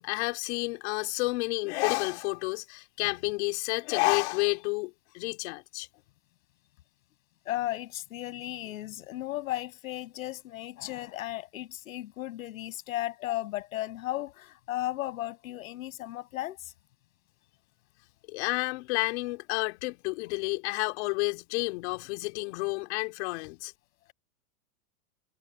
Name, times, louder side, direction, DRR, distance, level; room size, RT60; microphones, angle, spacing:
voice 1, 0.0-5.9 18.3-23.7, left 25 dB, 50° left, 2.6 m, -30 dB
voice 2, 7.5-16.7, left 15 dB, 70° left, 6.7 m, -35 dB
supercardioid pair, 145°, 42 cm